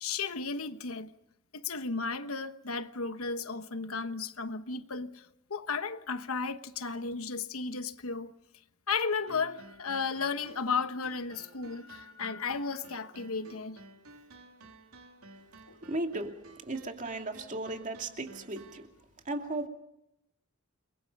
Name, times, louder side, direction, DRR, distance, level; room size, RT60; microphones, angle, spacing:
voice 1, 0.0-1.1 1.5-8.3 8.9-13.8 15.7-15.8, left 5 dB, 75° left, 1.2 m, -34 dB
sound 1, 9.3-18.9, right 2 dB, 90° right, 3.6 m, -54 dB
voice 2, 15.9-16.3 16.7-18.8 19.3-19.7, right 2 dB, 35° right, 2.5 m, -35 dB
30.0 x 23.0 x 5.4 m
head